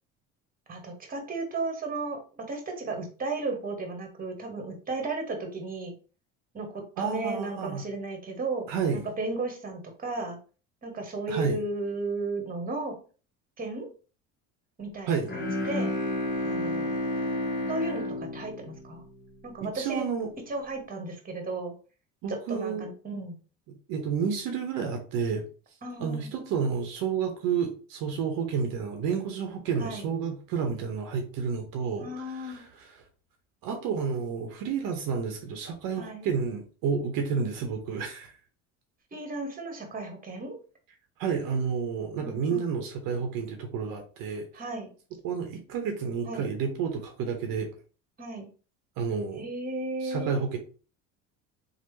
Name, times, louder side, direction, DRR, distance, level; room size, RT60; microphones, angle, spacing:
voice 1, 0.7-5.9 6.5-8.7 8.9-10.4 10.8-12.9 13.6-13.9 14.8-15.9 16.4-16.9 17.7-19.0 19.4-20.1 20.5-21.7 22.3-23.3 25.8-26.3 29.8-30.1 32.0-32.6 36.0-36.3 39.1-40.6 42.2-42.6 44.5-44.9 46.2-46.5 48.2-48.5 49.3-50.4, right 3 dB, 25° right, 3 dB, 1.1 m, -34 dB
voice 2, 7.0-7.8 8.7-9.0 11.3-11.6 15.1-15.3 19.6-20.3 22.2-22.9 23.7-25.4 26.0-32.1 32.3-32.9 33.6-38.3 41.2-44.5 45.2-47.7 49.0-49.4 50.0-50.6, right 6 dB, 65° right, 5 dB, 0.7 m, -30 dB
Bowed string instrument, 15.2-19.5, left 1 dB, 30° left, 1.4 m, -31 dB
3.2 x 2.1 x 3.1 m, 0.37 s
supercardioid pair, 85°, 36 cm